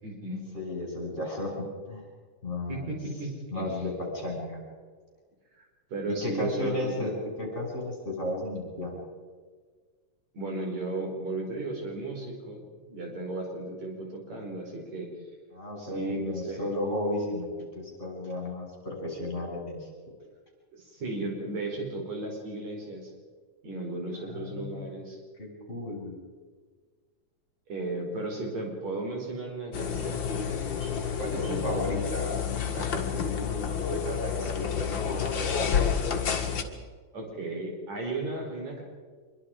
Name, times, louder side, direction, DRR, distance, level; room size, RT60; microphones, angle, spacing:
voice 1, 0.0-0.4 2.7-3.8 5.5-5.6 5.9-7.1 10.3-15.1 15.8-16.7 20.7-23.1 23.6-25.2 27.7-30.5 31.3-32.0 37.1-38.8, right 2 dB, 65° right, 0 dB, 5.9 m, -35 dB
voice 2, 0.5-2.0 2.4-2.9 3.5-4.6 6.1-7.1 7.4-9.1 15.5-17.5 17.7-19.9 24.2-24.9 25.4-26.2 31.2-35.8, left 1 dB, 20° left, -1 dB, 6.4 m, -34 dB
sound 1, 29.7-36.6, left 7 dB, 45° left, 2.3 m, -29 dB
25.5 x 23.5 x 5.1 m, 1.5 s
omnidirectional pair, 3.4 m